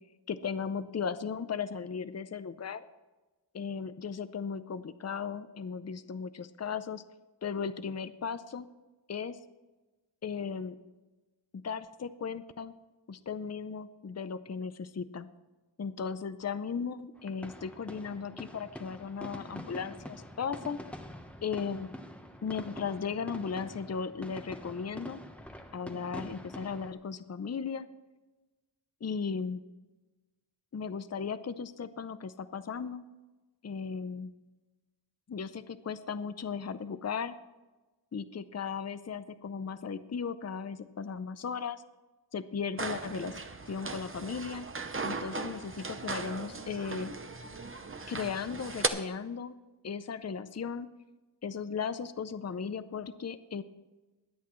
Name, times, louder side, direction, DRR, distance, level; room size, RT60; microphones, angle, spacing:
voice 1, 0.3-2.8 3.5-7.0 7.4-8.7 9.1-9.4 10.2-10.8 11.5-12.7 13.1-15.3 15.8-20.8 21.4-21.9 22.4-25.2 25.7-27.9 29.0-29.6 30.7-33.0 33.6-34.3 35.3-37.3 38.1-41.8 42.3-43.4 43.7-44.7 45.0-47.1 48.1-49.6 49.8-50.9 51.4-53.6, left 6 dB, 35° left, 13 dB, 0.6 m, -36 dB
sound 1, 17.2-26.9, equal, 5° left, 1.1 m, -45 dB
sound 2, 42.8-48.9, right 3 dB, 30° right, 0.8 m, -37 dB
21.5 x 8.2 x 3.1 m, 1.2 s
wide cardioid pair, 80°, 44 cm